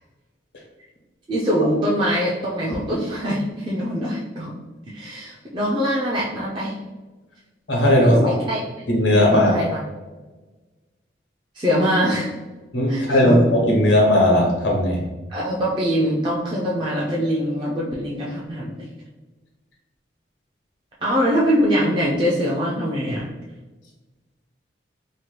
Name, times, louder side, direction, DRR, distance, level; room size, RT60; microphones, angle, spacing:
voice 1, 1.3-4.5 4.9-6.8 8.0-8.6 9.1-9.8 11.5-12.3 12.9-13.4 15.3-18.9 21.0-23.3, equal, 25° right, -5 dB, 0.4 m, -23 dB
voice 2, 7.7-8.3 8.9-9.5 12.7-15.0, left 1 dB, 85° left, -2 dB, 1.0 m, -17 dB
2.8 x 2.2 x 3.1 m, 1.2 s
head